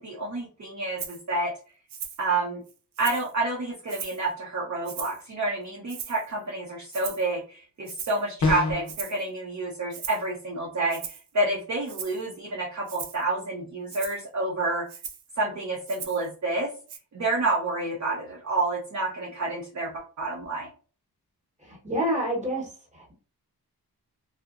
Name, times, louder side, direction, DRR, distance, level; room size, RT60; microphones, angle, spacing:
voice 1, 0.0-1.5 2.2-2.6 3.0-14.9 15.4-16.7 17.1-20.7, right 2 dB, 45° right, -2 dB, 0.6 m, -29 dB
Rattle (instrument), 1.0-1.2 1.9-2.2 2.7-3.3 3.9-4.3 4.8-5.3 5.9-6.3 6.9-7.3 7.9-8.2 8.9-9.2 9.9-10.2 10.9-11.3 11.9-12.2 12.9-13.2 13.9-14.2 14.9-15.3 15.9-16.3 16.9-17.0, right 7 dB, 90° right, 0.5 m, -39 dB
sound 1, 8.4-9.0, left 3 dB, 50° left, 0.6 m, -25 dB
voice 2, 21.6-23.1, equal, 20° right, -3 dB, 0.9 m, -29 dB
2.7 x 2.1 x 2.4 m, 0.38 s
wide cardioid pair, 165°, 38 cm